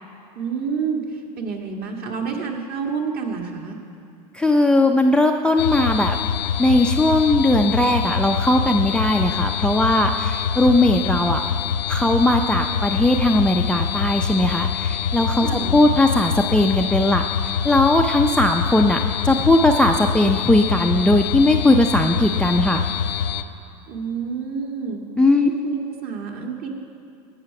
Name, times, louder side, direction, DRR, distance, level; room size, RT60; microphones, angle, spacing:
voice 1, 0.4-1.0 1.4-3.8 15.4-15.8 23.9-25.0 25.4-26.7, right 6 dB, 45° right, 1 dB, 1.8 m, -28 dB
voice 2, 4.3-6.2 6.6-11.4 11.9-17.2 17.6-22.8 25.2-25.5, left 1 dB, 5° left, 4 dB, 0.5 m, -18 dB
sound 1, 5.6-23.4, left 8 dB, 80° left, 0.5 m, -25 dB
17.0 x 5.7 x 5.9 m, 2.6 s
hypercardioid pair, 90°, 21 cm